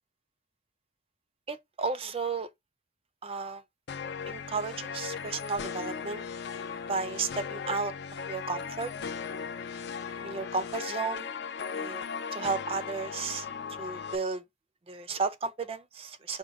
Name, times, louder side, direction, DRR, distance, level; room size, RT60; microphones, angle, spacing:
voice 1, 1.5-2.5 3.2-3.6 4.3-6.2 6.9-7.9 8.3-8.9 10.2-11.3 11.7-12.1 12.3-14.4 14.9-16.4, right 4 dB, 30° right, 0.4 m, -33 dB
sound 1, 3.9-14.2, left 6 dB, 60° left, 0.4 m, -37 dB
5.0 x 2.1 x 4.6 m
head